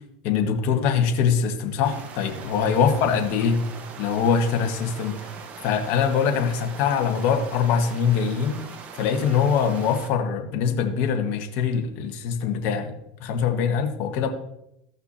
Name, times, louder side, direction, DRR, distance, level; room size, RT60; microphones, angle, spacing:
voice 1, 0.2-3.6 4.0-5.2 5.6-8.6 8.9-14.3, left 6 dB, 55° left, 4 dB, 1.4 m, -23 dB
sound 1, 1.8-10.1, right 5 dB, 40° right, 1.1 m, -41 dB
14.5 x 5.9 x 2.8 m, 0.79 s
supercardioid pair, 110°, 4 cm